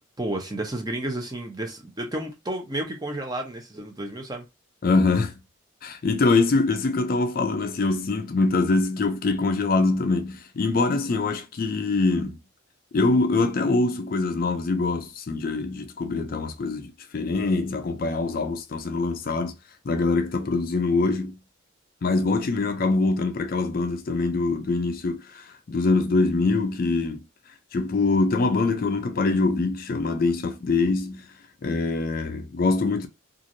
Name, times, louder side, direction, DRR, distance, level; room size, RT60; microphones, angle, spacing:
voice 1, 0.2-4.4, right 1 dB, 20° right, 0.6 m, -31 dB
voice 2, 4.8-5.3 5.8-12.4 12.9-19.6 19.8-21.4 22.0-27.2 27.7-31.3 31.6-33.1, left 3 dB, 45° left, 0.3 m, -24 dB
3.0 x 2.4 x 2.6 m
head